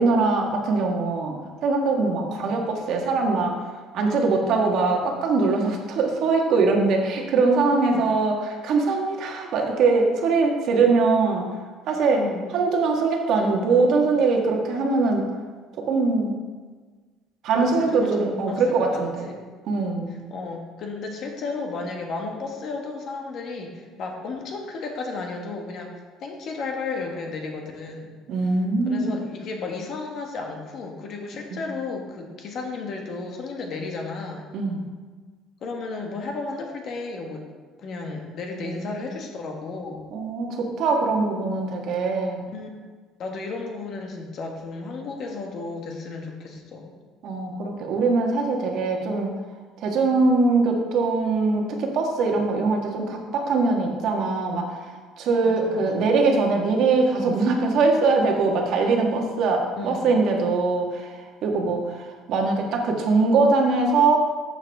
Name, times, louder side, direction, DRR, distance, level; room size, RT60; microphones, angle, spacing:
voice 1, 0.0-3.6 3.9-11.4 11.9-12.2 12.5-15.2 15.9-16.3 17.4-19.2 19.7-20.2 28.3-29.1 31.5-31.6 34.5-34.8 38.6-39.0 40.1-42.5 47.2-49.3 49.8-54.8 55.2-61.1 61.4-64.2, right 3 dB, 50° right, 1 dB, 1.4 m, -22 dB
voice 2, 2.3-2.6 7.9-8.1 12.1-12.5 17.6-18.1 18.5-18.6 18.9-19.4 20.1-25.9 26.2-28.2 28.9-34.4 35.6-37.4 37.8-40.1 42.5-42.7 43.2-46.9 55.4-55.8 59.6-60.1, left 3 dB, 45° left, 2 dB, 1.4 m, -33 dB
11.5 x 7.2 x 3.4 m, 1.4 s
cardioid pair, 160°, 0 cm